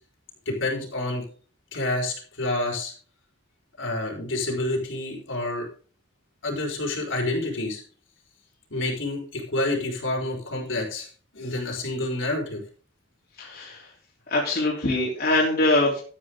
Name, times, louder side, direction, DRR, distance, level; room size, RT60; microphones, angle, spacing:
voice 1, 0.5-1.2 1.7-2.9 3.8-5.7 6.4-7.8 8.7-11.1 11.3-12.6, left 2 dB, 80° left, 0 dB, 4.6 m, -28 dB
voice 2, 13.4-13.9 14.3-16.0, left 2 dB, 50° left, -3 dB, 3.2 m, -23 dB
13.0 x 8.9 x 3.7 m, 0.41 s
head